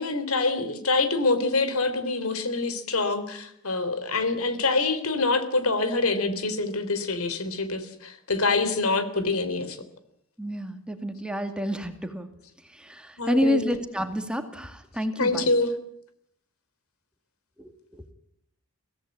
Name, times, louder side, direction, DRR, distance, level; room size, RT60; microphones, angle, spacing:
voice 1, 0.0-9.8 13.2-13.7 15.2-15.7, left 3 dB, 85° left, 11 dB, 3.4 m, -25 dB
voice 2, 10.4-12.3 12.6-15.5 17.6-18.0, equal, 5° right, 7 dB, 2.3 m, -29 dB
23.5 x 17.0 x 9.6 m, 0.72 s
head